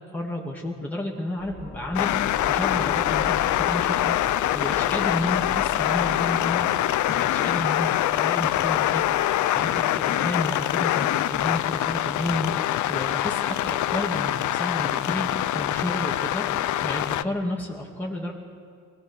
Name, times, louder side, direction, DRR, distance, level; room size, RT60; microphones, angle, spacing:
voice 1, 0.1-6.7 7.1-9.0 9.4-15.3 15.5-18.3, left 1 dB, 5° left, -3 dB, 2.7 m, -31 dB
sound 1, 1.4-12.4, left 3 dB, 35° left, 2.2 m, -41 dB
sound 2, 1.9-17.2, left 13 dB, 75° left, 0.7 m, -24 dB
23.5 x 19.0 x 6.6 m, 2.1 s
cardioid pair, 90°, 30 cm